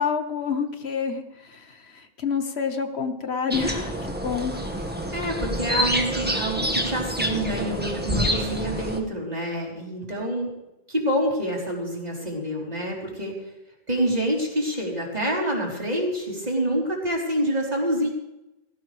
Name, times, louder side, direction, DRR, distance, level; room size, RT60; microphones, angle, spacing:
voice 1, 0.0-4.7, left 6 dB, 80° left, 7 dB, 1.6 m, -28 dB
sound 1, 3.5-9.0, equal, 10° right, 1.8 m, -27 dB
voice 2, 5.1-10.5 10.9-13.4 13.9-18.1, equal, 40° right, -3 dB, 4.1 m, -27 dB
17.5 x 17.5 x 3.4 m, 0.93 s
omnidirectional pair, 1.1 m